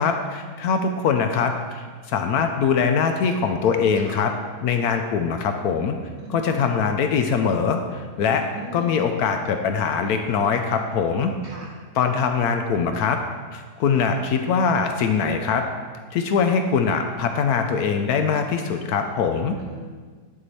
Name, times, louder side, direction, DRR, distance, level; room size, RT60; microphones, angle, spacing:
voice 1, 0.0-4.3 4.6-6.0 6.3-8.4 8.7-11.3 11.9-13.2 13.5-15.6 16.1-19.6, left 6 dB, 75° left, 5 dB, 1.0 m, -22 dB
voice 2, 6.2-6.6 8.2-8.9 11.4-11.8 19.6-19.8, right 3 dB, 45° right, -3 dB, 1.5 m, -40 dB
10.0 x 4.7 x 4.1 m, 1.5 s
omnidirectional pair, 1.8 m